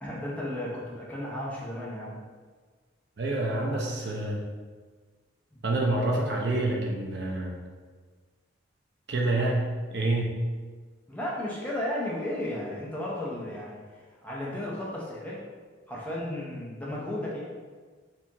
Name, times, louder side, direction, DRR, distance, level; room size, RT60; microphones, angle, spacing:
voice 1, 0.0-2.2 3.6-3.9 11.1-15.4 15.9-17.5, left 1 dB, 5° left, -5 dB, 0.6 m, -34 dB
voice 2, 3.2-4.4 5.6-7.6 9.1-10.3, right 2 dB, 60° right, -1 dB, 0.5 m, -27 dB
4.3 x 2.4 x 2.8 m, 1.5 s
head